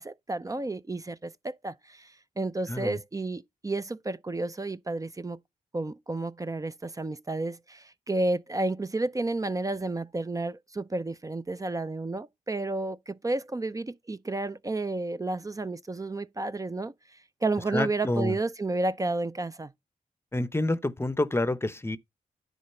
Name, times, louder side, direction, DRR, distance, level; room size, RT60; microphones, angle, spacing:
voice 1, 0.0-5.4 5.7-16.9 17.4-19.7, right 2 dB, 25° right, 0.5 m, -31 dB
voice 2, 2.7-3.0 17.7-18.4 20.3-22.0, left 2 dB, 15° left, 0.7 m, -28 dB
10.0 x 4.0 x 5.5 m
cardioid pair, 70°, 15 cm